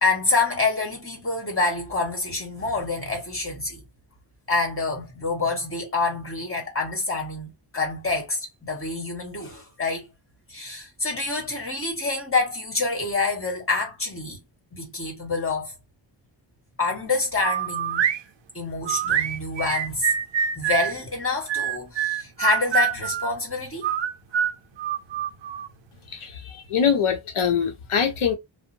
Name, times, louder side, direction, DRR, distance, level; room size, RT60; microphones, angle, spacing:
voice 1, 0.0-3.8 4.5-10.1 10.5-14.4 14.7-15.8 16.8-18.1 18.5-20.1 20.5-23.9, left 3 dB, 25° left, 1.4 m, -27 dB
sound 1, 17.4-18.2 18.9-20.9 21.5-23.3 23.8-25.7, right 9 dB, 65° right, 0.5 m, -25 dB
voice 2, 26.1-28.3, left 7 dB, 85° left, 0.7 m, -23 dB
2.6 x 2.0 x 2.6 m
wide cardioid pair, 90°, 49 cm